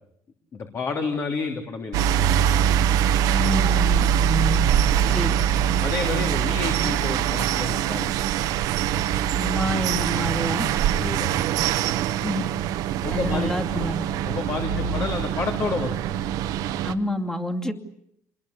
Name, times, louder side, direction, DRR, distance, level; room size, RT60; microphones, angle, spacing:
voice 1, 0.5-2.4 5.8-8.1 10.9-11.4 13.0-16.0, left 4 dB, 45° left, 4 dB, 3.2 m, -30 dB
sound 1, 1.9-16.9, right 10 dB, 85° right, 1.3 m, -23 dB
voice 2, 3.3-4.6 5.1-5.3 9.4-10.7 12.2-12.5 13.1-14.0 14.7-15.1 16.8-17.7, left 1 dB, 10° left, 4 dB, 2.6 m, -28 dB
27.0 x 21.5 x 8.6 m, 0.74 s
cardioid pair, 115°, 6 cm